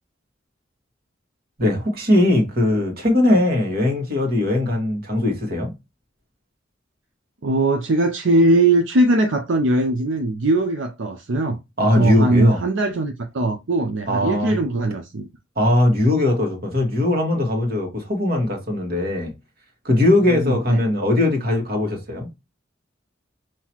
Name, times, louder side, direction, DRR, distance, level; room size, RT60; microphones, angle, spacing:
voice 1, 1.6-5.7 11.8-12.6 14.1-14.6 15.6-19.3 19.9-22.3, left 1 dB, 55° right, 1.8 m, -20 dB
voice 2, 7.4-15.3 20.3-20.8, right 2 dB, 75° right, 0.7 m, -20 dB
5.7 x 3.0 x 3.0 m
head